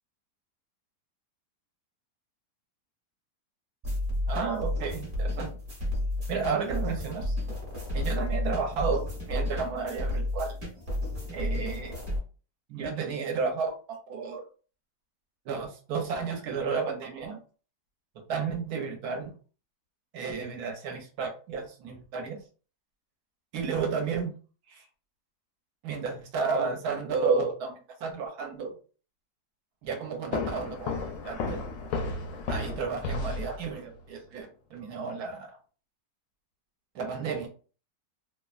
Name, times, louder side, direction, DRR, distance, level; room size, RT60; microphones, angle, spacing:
sound 1, 3.8-12.2, left 1 dB, 35° right, 0.9 m, -32 dB
voice 1, 4.3-5.5 6.3-7.4 7.9-10.6 11.3-11.9 12.7-13.7 14.1-14.4 15.4-17.4 18.3-19.3 20.1-22.4 23.5-24.4 24.7-24.8 25.8-28.7 29.8-30.9 31.2-31.6 32.5-35.5 36.9-37.5, right 5 dB, 70° right, 4 dB, 1.1 m, -32 dB
sound 2, 30.3-34.0, left 3 dB, 70° left, 0.9 m, -33 dB
3.0 x 2.1 x 2.3 m, 0.37 s
omnidirectional pair, 1.9 m